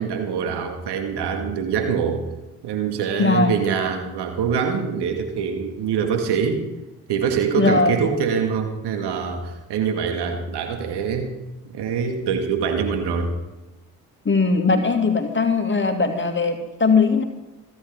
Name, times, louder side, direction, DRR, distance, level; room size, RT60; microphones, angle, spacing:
voice 1, 0.0-2.2 2.6-6.6 7.1-11.3 11.6-13.4, right 6 dB, 55° right, 5 dB, 2.2 m, -24 dB
voice 2, 3.2-3.5 7.6-8.0 14.2-17.2, left 4 dB, 25° left, 5 dB, 2.5 m, -19 dB
28.0 x 10.0 x 3.8 m, 1.1 s
figure-of-eight pair, 40°, 48 cm